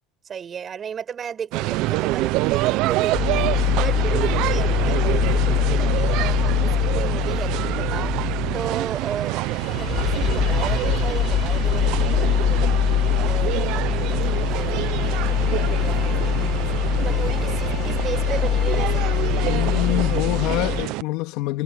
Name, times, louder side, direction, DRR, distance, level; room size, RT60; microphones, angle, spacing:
voice 1, 0.2-16.7 17.0-19.1, right 7 dB, 25° right, 7.3 m, -34 dB
sound 1, 1.5-21.0, right 19 dB, 60° right, 0.6 m, -26 dB
sound 2, 1.6-18.4, right 29 dB, 90° right, 5.7 m, -35 dB
sound 3, 3.1-20.8, left 11 dB, 40° left, 2.1 m, -23 dB
voice 2, 19.4-21.6, left 19 dB, 65° left, 3.2 m, -26 dB
cardioid pair, 155°, 0 cm